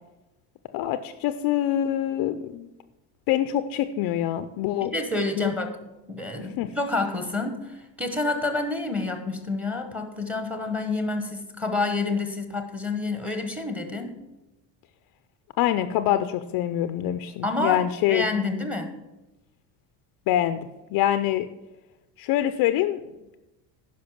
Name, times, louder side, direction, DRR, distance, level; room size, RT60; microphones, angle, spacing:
voice 1, 0.7-2.7 3.3-4.9 5.4-5.5 6.6-6.7 15.6-18.2 20.3-21.5 22.2-23.1, left 12 dB, 50° left, 11 dB, 0.5 m, -25 dB
voice 2, 4.8-5.7 6.1-14.2 17.4-17.8 18.1-18.9, left 3 dB, 5° right, 7 dB, 1.0 m, -28 dB
10.5 x 5.6 x 7.2 m, 1.0 s
cardioid pair, 165°, 48 cm